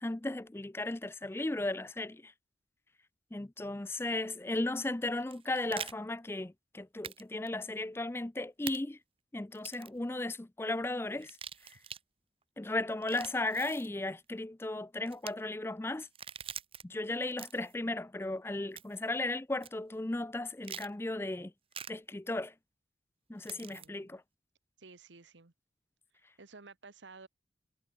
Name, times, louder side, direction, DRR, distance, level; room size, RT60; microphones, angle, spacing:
voice 1, 0.0-2.3 3.3-9.0 9.3-11.4 12.6-16.1 16.8-21.5 21.9-22.5 23.3-24.2, left 2 dB, 15° left, 0.4 m, -35 dB
sound 1, 5.2-5.9 7.0-7.2 7.5-7.6 8.7-8.8 9.5-10.0 11.2-12.0 12.9-13.9 15.1-15.3 16.0-16.8 17.3-17.7 18.8-19.1 19.6-19.7 20.6-20.9 21.7-21.9 23.4-23.9, right 8 dB, 30° right, 1.7 m, -44 dB
voice 2, 23.5-24.2 24.8-25.5 26.4-27.3, right 4 dB, 80° right, 1.4 m, -54 dB
head